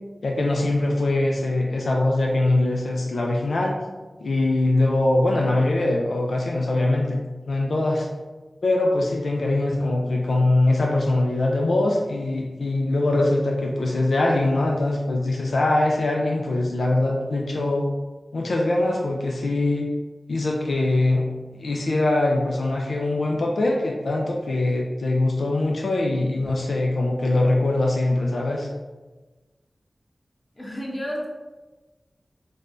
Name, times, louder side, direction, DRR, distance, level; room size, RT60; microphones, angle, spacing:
voice 1, 0.2-3.8 4.2-7.2 7.5-8.1 8.6-17.9 18.3-19.9 20.3-21.3 21.5-28.7, left 2 dB, 90° left, -1 dB, 0.4 m, -22 dB
voice 2, 30.6-31.3, equal, 30° left, -2 dB, 0.9 m, -31 dB
3.3 x 2.2 x 3.8 m, 1.2 s
cardioid pair, 45°, 0 cm